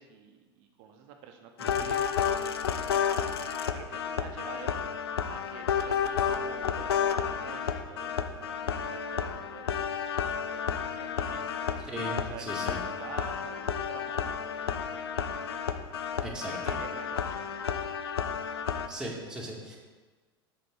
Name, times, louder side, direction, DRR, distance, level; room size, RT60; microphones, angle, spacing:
voice 1, 0.0-3.1 3.7-4.8 5.3-16.1 16.5-17.6, right 7 dB, 55° right, 4 dB, 1.1 m, -48 dB
sound 1, 1.6-18.9, left 7 dB, 75° left, 0.5 m, -31 dB
voice 2, 11.9-12.8 16.2-16.5 18.9-19.8, right 1 dB, 5° right, -4 dB, 2.1 m, -38 dB
7.8 x 4.5 x 6.4 m, 1.4 s
figure-of-eight pair, 80°, 13 cm